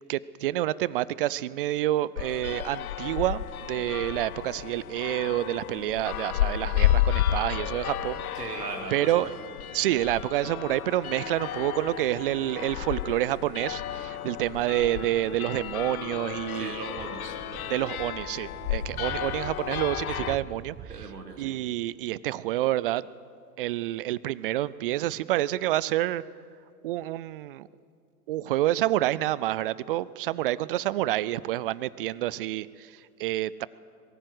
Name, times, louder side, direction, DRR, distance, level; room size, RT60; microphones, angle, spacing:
voice 1, 0.1-8.4 8.9-9.3 9.7-16.7 17.7-20.8 21.4-23.1 23.6-26.2 26.8-27.7 28.3-33.7, right 14 dB, 35° right, 20 dB, 0.4 m, -28 dB
sound 1, 2.2-20.4, left 12 dB, 60° left, 0.9 m, -32 dB
voice 2, 8.3-9.3 16.5-17.8 20.9-21.6, right 4 dB, 75° right, 4 dB, 2.7 m, -38 dB
sound 2, 15.4-16.5 16.9-21.1, right 8 dB, 20° right, 1.0 m, -43 dB
22.5 x 15.0 x 7.9 m, 2.3 s
figure-of-eight pair, 105°, 48 cm